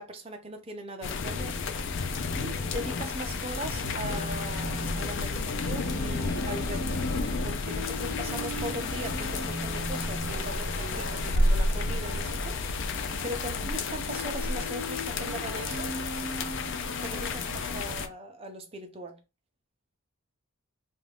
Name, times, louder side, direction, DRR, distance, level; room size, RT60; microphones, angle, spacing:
voice 1, 0.0-1.6 2.3-6.9 7.4-15.9 17.0-19.2, right 1 dB, 25° right, 0.5 m, -39 dB
sound 1, 1.0-18.1, left 3 dB, 55° left, 0.3 m, -31 dB
sound 2, 3.8-17.8, equal, 75° left, 1.0 m, -40 dB
2.5 x 2.3 x 3.3 m
head